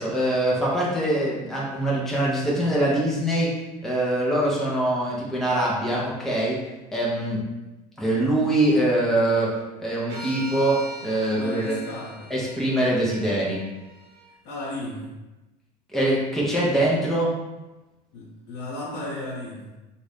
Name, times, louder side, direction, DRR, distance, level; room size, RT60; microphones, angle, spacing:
voice 1, 0.0-3.5 3.8-6.6 6.9-7.4 8.0-11.8 12.3-13.6 15.9-17.3, right 1 dB, ahead, -6 dB, 0.8 m, -23 dB
sound 1, 10.1-14.3, right 1 dB, 60° right, 1.2 m, -41 dB
voice 2, 11.3-12.3 14.4-15.1 18.1-19.7, left 1 dB, 70° left, -6 dB, 1.2 m, -34 dB
2.6 x 2.5 x 3.5 m, 1.0 s
hypercardioid pair, 95°, 21 cm